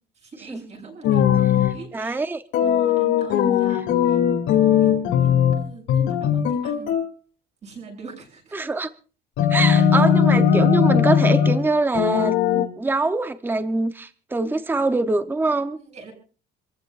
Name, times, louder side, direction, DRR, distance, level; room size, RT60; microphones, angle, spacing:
voice 1, 0.2-2.2 2.6-3.8 4.1-4.2 4.5-6.9 7.6-8.6 9.6-9.9 14.4-14.5 15.9-16.1, right 4 dB, 35° right, 7.4 m, -42 dB
sound 1, 1.0-1.8 2.5-5.6 5.9-7.1 9.4-11.6 12.0-12.7, left 8 dB, 85° left, 2.7 m, -19 dB
voice 2, 1.9-2.4 8.5-8.9 9.5-15.8, right 3 dB, 10° right, 0.8 m, -24 dB
27.0 x 15.0 x 2.5 m
cardioid pair, 140°, 19 cm